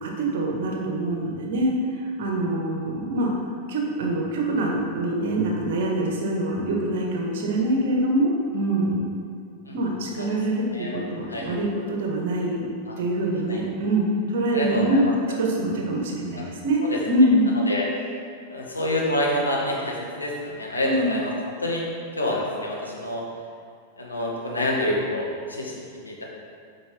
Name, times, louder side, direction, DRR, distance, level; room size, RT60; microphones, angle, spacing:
voice 1, 0.0-1.7 2.2-3.3 3.7-9.0 9.7-12.7 13.0-15.0 15.4-17.5 20.9-21.1, right 1 dB, 55° right, -1 dB, 1.6 m, -24 dB
voice 2, 10.5-10.9 11.3-11.5 12.8-13.0 13.5-13.6 14.5-15.1 16.3-16.5 16.8-17.0 17.7-18.1 18.5-21.9 22.1-23.2 24.0-26.2, left 1 dB, 80° left, -3 dB, 1.5 m, -28 dB
8.0 x 5.1 x 5.2 m, 2.3 s
figure-of-eight pair, 90°, 0 cm